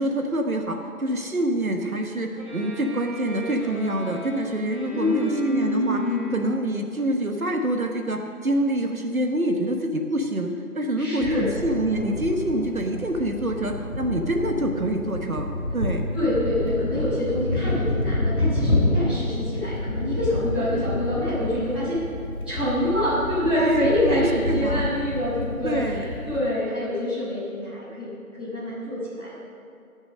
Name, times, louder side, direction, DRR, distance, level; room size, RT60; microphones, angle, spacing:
voice 1, 0.0-6.0 6.3-16.0 23.5-24.8 25.6-26.0, right 1 dB, 70° right, 4 dB, 1.1 m, -26 dB
Bowed string instrument, 2.4-6.8, equal, 25° right, 1.4 m, -39 dB
voice 2, 4.9-6.4 11.0-11.5 16.1-22.0 22.5-29.3, left 1 dB, 5° right, -18 dB, 2.2 m, -26 dB
sound 1, 11.2-26.4, left 1 dB, 60° left, 3.3 m, -28 dB
15.5 x 6.2 x 6.3 m, 2.4 s
figure-of-eight pair, 175°, 44 cm